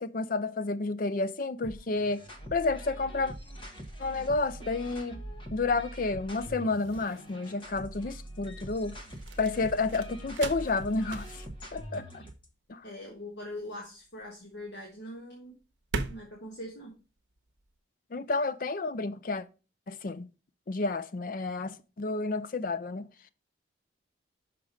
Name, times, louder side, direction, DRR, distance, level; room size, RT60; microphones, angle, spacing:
voice 1, 0.0-2.2 2.5-3.3 4.0-5.2 5.5-9.0 9.4-11.4 11.7-12.2 12.7-12.8 18.1-19.4 19.9-20.3 20.7-23.0, left 3 dB, 45° left, 0.4 m, -30 dB
sound 1, 1.6-12.5, right 1 dB, 25° left, 0.9 m, -43 dB
various paper and hand hitting wooden desk sounds, 3.9-17.8, right 3 dB, 85° right, 0.8 m, -43 dB
voice 2, 12.8-15.6 16.1-16.9, left 1 dB, 65° left, 1.5 m, -42 dB
5.9 x 5.0 x 5.2 m
head